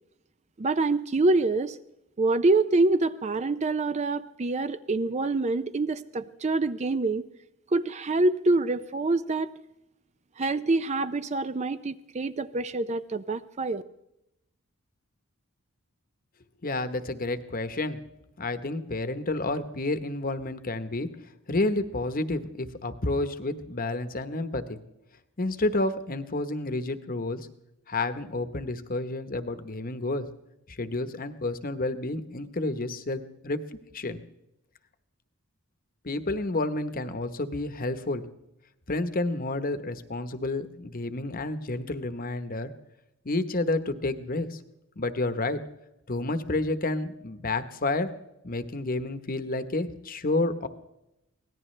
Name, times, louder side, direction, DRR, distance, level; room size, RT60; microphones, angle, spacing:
voice 1, 0.6-1.8 2.2-7.2 7.7-9.5 10.4-13.8, right 2 dB, 30° right, 13 dB, 0.5 m, -26 dB
voice 2, 16.6-18.0 18.4-21.1 21.5-24.8 25.4-27.4 27.9-30.3 30.7-33.6 33.9-34.2 36.0-38.2 38.9-42.7 43.2-44.6 45.0-45.6 46.1-48.1 48.4-50.7, left 2 dB, 40° left, 10 dB, 1.1 m, -30 dB
24.5 x 18.0 x 3.3 m, 0.86 s
head